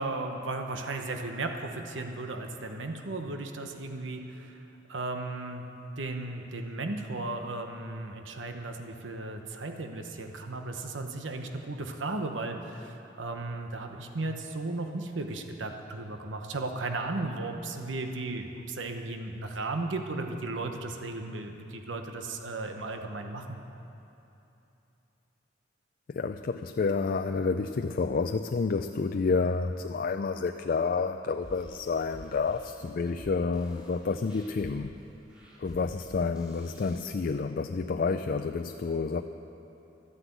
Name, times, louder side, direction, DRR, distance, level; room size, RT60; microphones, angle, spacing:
voice 1, 0.0-4.5 4.9-5.6 6.0-23.6, right 2 dB, 85° right, 5 dB, 1.0 m, -35 dB
voice 2, 26.1-34.9 35.6-39.2, left 4 dB, 50° left, 7 dB, 0.4 m, -29 dB
sound 1, 31.4-37.1, equal, 5° right, 3.5 m, -51 dB
12.5 x 9.8 x 8.2 m, 3.0 s
head